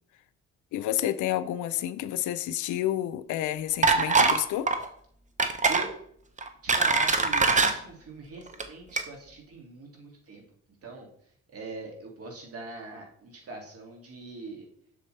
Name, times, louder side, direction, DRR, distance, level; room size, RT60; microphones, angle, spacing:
voice 1, 0.7-4.7, left 12 dB, 75° left, 0.5 m, -29 dB
sound 1, 3.8-4.4 4.7-4.9 5.4-5.9 6.4-7.7 8.5-8.6 9.0-9.1, right 4 dB, 25° right, 0.8 m, -22 dB
voice 2, 6.6-10.4 10.8-11.1 11.5-14.7, right 3 dB, 50° right, 2.4 m, -42 dB
7.6 x 6.6 x 3.3 m
cardioid pair, 90°, 30 cm